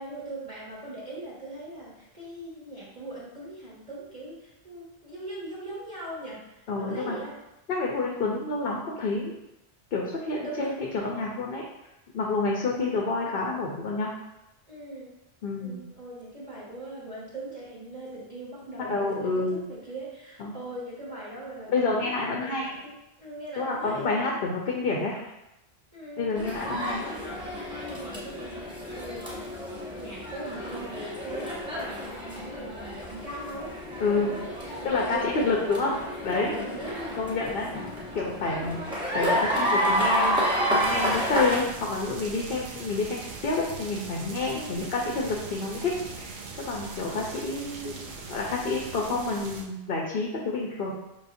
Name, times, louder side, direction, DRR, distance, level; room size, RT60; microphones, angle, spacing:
voice 1, 0.0-7.4 10.2-10.7 14.7-15.1 15.6-24.4 25.9-26.6 26.9-27.0 27.8-28.7 29.0-29.3 29.9-35.4 36.5-37.2 44.5-44.8, right 1 dB, 35° right, -7 dB, 1.1 m, -40 dB
voice 2, 6.7-7.2 7.7-9.3 9.9-11.6 12.1-14.1 15.4-15.8 18.8-19.6 20.4-20.5 21.7-22.7 23.6-25.3 26.2-27.0 34.0-34.3 34.8-36.0 36.2-36.5 37.1-37.7 38.1-46.4 46.7-50.9, left 3 dB, 65° left, -2 dB, 0.8 m, -28 dB
sound 1, 26.4-41.6, equal, 5° right, 0.9 m, -30 dB
sound 2, 40.8-49.6, right 4 dB, 55° right, 0.7 m, -40 dB
5.6 x 3.4 x 2.6 m, 0.91 s
omnidirectional pair, 1.1 m